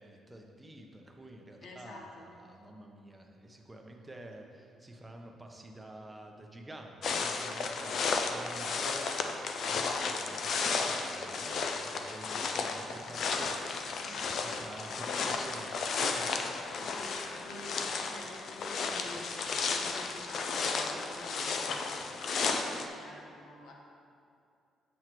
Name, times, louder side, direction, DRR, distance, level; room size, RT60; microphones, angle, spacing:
voice 1, 0.0-9.3 9.6-13.5 14.6-15.7 16.0-16.3, right 1 dB, 15° right, 2 dB, 0.8 m, -49 dB
voice 2, 1.6-2.3 14.0-15.6 16.7-22.1 22.4-23.7, left 1 dB, 80° left, -1 dB, 1.1 m, -49 dB
sound 1, 7.0-22.9, left 4 dB, 60° left, 0.5 m, -33 dB
7.6 x 6.3 x 3.0 m, 2.5 s
cardioid pair, 90°, 0 cm